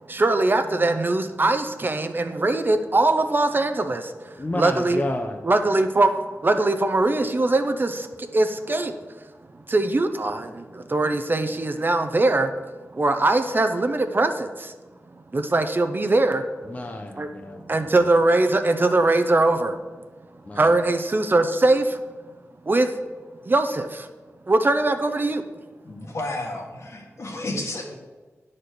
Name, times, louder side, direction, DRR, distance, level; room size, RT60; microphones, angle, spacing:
voice 1, 0.1-4.1 4.6-5.0 5.4-6.2 6.4-8.9 9.7-12.5 12.9-14.7 15.3-16.4 17.2-17.3 17.7-19.8 20.5-22.0 22.7-22.9 23.4-24.1 24.5-25.4, right 2 dB, 40° right, 8 dB, 0.6 m, -21 dB
voice 2, 4.4-5.4 16.6-18.1 20.4-20.7, left 1 dB, 30° left, 3 dB, 0.7 m, -31 dB
voice 3, 25.8-28.0, left 2 dB, 65° left, 0 dB, 1.7 m, -32 dB
9.4 x 4.3 x 6.6 m, 1.3 s
wide cardioid pair, 70°, 5 cm